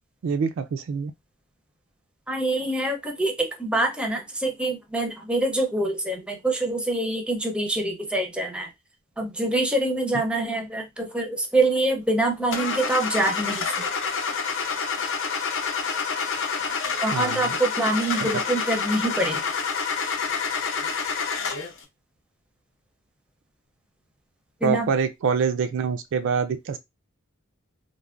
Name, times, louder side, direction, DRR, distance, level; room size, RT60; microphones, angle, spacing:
voice 1, 0.2-1.1 17.1-17.5 18.2-18.3 24.6-26.8, right 6 dB, 60° right, 0.3 m, -25 dB
voice 2, 2.3-8.7 9.2-13.9 17.0-19.4 24.6-24.9, right 2 dB, 5° right, 0.5 m, -25 dB
Car / Engine starting, 12.5-21.8, left 5 dB, 65° left, 0.6 m, -28 dB
3.3 x 2.1 x 2.4 m
head